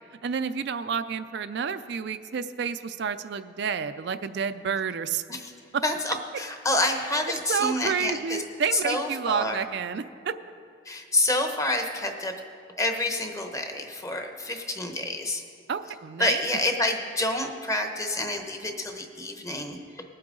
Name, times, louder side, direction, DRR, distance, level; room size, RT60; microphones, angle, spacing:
voice 1, 0.2-5.2 5.7-5.8 7.5-10.3 15.7-16.4, right 6 dB, 60° right, 10 dB, 0.4 m, -29 dB
voice 2, 5.8-8.4 8.7-9.6 10.8-12.4 12.8-15.4 16.2-20.0, left 2 dB, 15° left, 4 dB, 0.9 m, -28 dB
19.5 x 8.6 x 3.8 m, 2.3 s
head